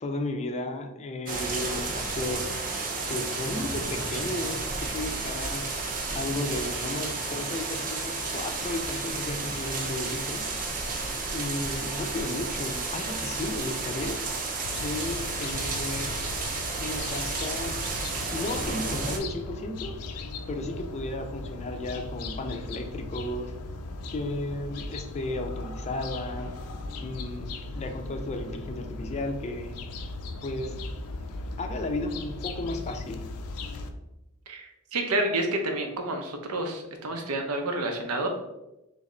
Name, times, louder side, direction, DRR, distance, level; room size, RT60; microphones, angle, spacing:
voice 1, 0.0-2.4 3.1-5.7 6.1-10.5 11.3-14.2 14.8-16.2 16.8-17.8 18.3-19.9 20.5-23.5 24.1-26.5 27.0-29.8 30.4-30.7 31.6-33.3, left 2 dB, 30° left, 4 dB, 0.4 m, -34 dB
sound 1, 1.3-19.2, right 3 dB, 40° right, 0.6 m, -32 dB
sound 2, 14.6-33.9, left 2 dB, 90° left, 0.4 m, -38 dB
voice 2, 34.5-38.3, right 2 dB, 90° right, 4 dB, 0.7 m, -29 dB
3.3 x 3.1 x 3.8 m, 0.93 s
head